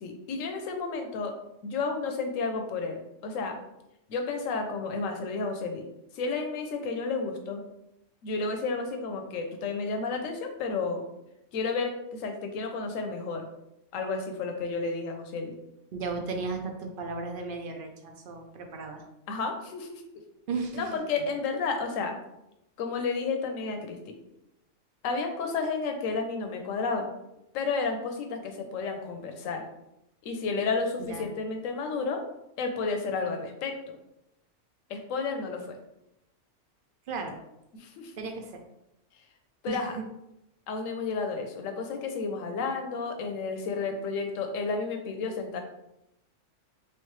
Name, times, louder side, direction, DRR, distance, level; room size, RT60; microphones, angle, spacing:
voice 1, 0.0-1.3 1.6-3.6 4.1-5.8 6.1-7.6 8.2-11.0 11.5-13.5 13.9-15.5 19.3-20.0 20.7-22.2 22.8-24.1 25.0-27.1 27.5-29.7 30.2-32.2 32.6-34.0 34.9-35.8 37.7-38.1 39.6-40.0 40.7-45.6, left 4 dB, 80° left, 5 dB, 1.0 m, -31 dB
voice 2, 15.9-19.0 20.5-20.9 31.0-31.3 37.1-37.4 38.2-38.6 39.7-40.0, right 4 dB, 60° right, 4 dB, 0.6 m, -35 dB
3.4 x 3.2 x 3.1 m, 0.87 s
omnidirectional pair, 1.3 m